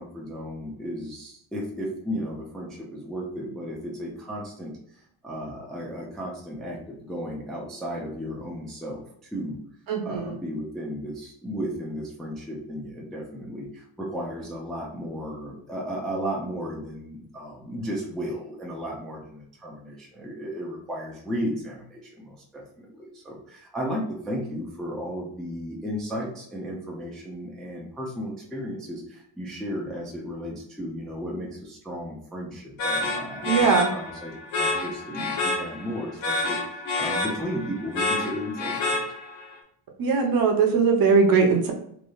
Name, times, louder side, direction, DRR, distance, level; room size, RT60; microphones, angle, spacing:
voice 1, 0.0-9.6 10.0-39.0, equal, ahead, -3 dB, 0.3 m, -34 dB
voice 2, 9.9-10.4 33.4-33.9 40.0-41.7, right 5 dB, 50° right, 3 dB, 0.7 m, -20 dB
sound 1, 32.8-39.5, left 2 dB, 80° left, 0.9 m, -28 dB
3.1 x 2.6 x 2.3 m, 0.70 s
cardioid pair, 145°, 46 cm